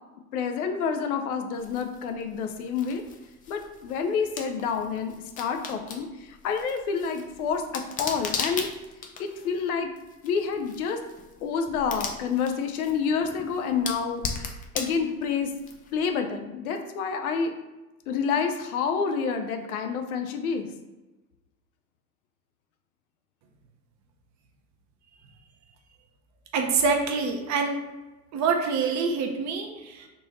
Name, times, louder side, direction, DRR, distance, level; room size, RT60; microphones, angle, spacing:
voice 1, 0.3-3.0 3.5-8.7 9.2-9.9 10.2-11.0 11.4-15.5 15.9-17.5 18.1-20.7, left 6 dB, 75° left, 6 dB, 0.7 m, -28 dB
sound 1, 1.6-16.1, left 5 dB, 20° left, 0.4 m, -39 dB
voice 2, 26.5-27.8 28.3-30.1, right 5 dB, 40° right, 3 dB, 0.8 m, -26 dB
3.9 x 2.6 x 4.0 m, 1.1 s
hypercardioid pair, 85°, 45 cm